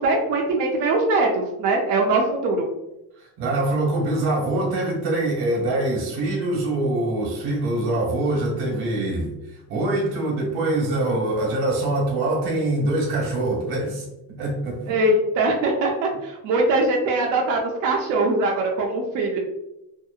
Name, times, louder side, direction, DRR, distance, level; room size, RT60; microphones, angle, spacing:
voice 1, 0.0-2.7 14.9-19.4, right 2 dB, 55° right, -1 dB, 0.5 m, -22 dB
voice 2, 3.2-15.0, right 2 dB, 85° right, -1 dB, 1.1 m, -24 dB
2.7 x 2.1 x 2.3 m, 0.90 s
cardioid pair, 130°, 38 cm